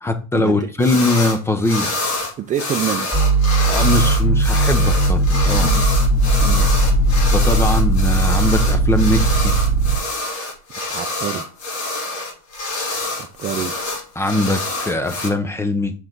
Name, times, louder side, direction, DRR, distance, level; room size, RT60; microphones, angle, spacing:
voice 1, 0.0-2.0 3.6-5.8 7.3-9.5 14.2-15.9, left 2 dB, 10° left, 0.8 m, -21 dB
sound 1, 0.8-1.4 1.6-15.3, left 2 dB, 90° left, 3.3 m, -26 dB
voice 2, 2.5-3.1 5.6-5.8 6.4-6.7 10.9-11.4 13.4-13.7, right 10 dB, 25° right, 0.5 m, -25 dB
sound 2, 3.1-10.0, right 2 dB, 10° right, 2.1 m, -17 dB
6.0 x 4.8 x 3.9 m
supercardioid pair, 125°, 31 cm